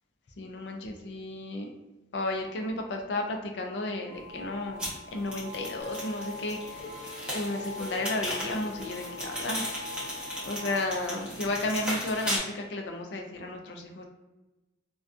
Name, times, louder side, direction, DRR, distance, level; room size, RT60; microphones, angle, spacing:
voice 1, 0.4-1.7 2.1-6.9 7.3-9.7 10.1-10.2 10.5-14.1, left 2 dB, 60° left, 3 dB, 0.4 m, -33 dB
sound 1, 4.1-11.6, left 3 dB, 70° right, 0.3 m, -43 dB
sound 2, 4.8-12.4, equal, 5° right, 0.7 m, -37 dB
sound 3, 5.8-10.5, left 2 dB, 30° left, 0.8 m, -46 dB
2.4 x 2.2 x 2.5 m, 1.1 s
head